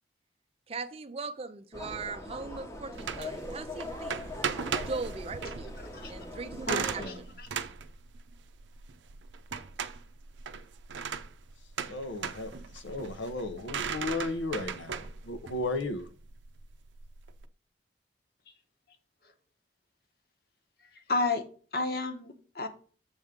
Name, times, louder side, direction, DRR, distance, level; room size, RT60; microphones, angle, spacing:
voice 1, 0.7-4.3 4.9-5.7 6.1-7.4, right 4 dB, 30° right, 0.4 m, -39 dB
sound 1, 1.7-7.0, left 2 dB, 15° left, 0.8 m, -41 dB
sound 2, 2.9-17.4, right 6 dB, 80° right, 0.5 m, -38 dB
voice 2, 5.8-6.1 6.7-7.5 21.1-21.4 21.7-22.7, left 3 dB, 55° left, 1.0 m, -32 dB
voice 3, 11.9-16.1, left 2 dB, 90° left, 0.9 m, -35 dB
7.2 x 3.6 x 5.0 m
head